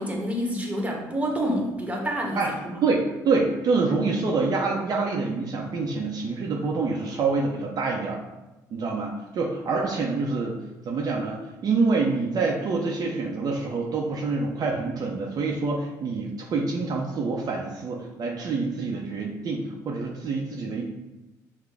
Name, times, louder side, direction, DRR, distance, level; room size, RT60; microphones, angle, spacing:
voice 1, 0.0-2.8, equal, 15° right, 0 dB, 1.1 m, -28 dB
voice 2, 3.2-8.2 8.7-10.6 10.8-20.8, right 4 dB, 50° right, -1 dB, 0.6 m, -26 dB
6.0 x 2.2 x 3.4 m, 1.0 s
supercardioid pair, 80°, 8 cm